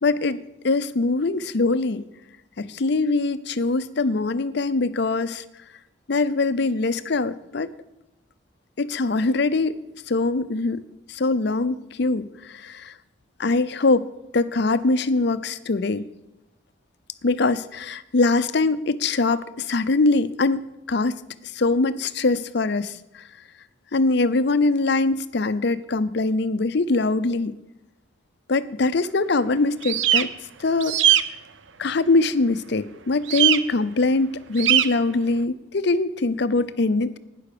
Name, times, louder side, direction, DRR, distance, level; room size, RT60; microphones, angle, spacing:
voice 1, 0.0-2.0 2.6-5.4 6.1-7.7 8.8-9.8 10.1-10.8 11.1-12.9 13.4-14.1 14.3-16.0 17.2-21.2 21.5-23.2 23.9-27.5 28.5-30.3 30.6-31.0 31.8-37.2, left 3 dB, 55° left, 14 dB, 0.6 m, -23 dB
sound 1, 29.8-30.2 30.8-31.2 33.3-33.6 34.6-34.9, right 12 dB, 65° right, 0.6 m, -19 dB
11.5 x 9.9 x 6.7 m, 0.91 s
head